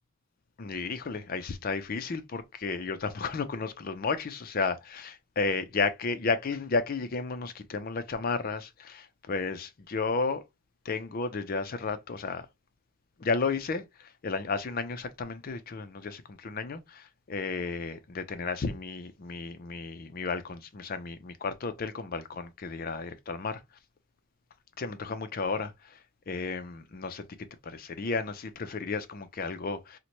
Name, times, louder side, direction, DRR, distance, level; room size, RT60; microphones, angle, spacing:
voice 1, 0.6-10.4 10.8-12.5 13.2-23.6 24.8-27.2 27.6-30.0, left 4 dB, 40° left, 0.4 m, -33 dB
3.9 x 2.1 x 2.9 m
head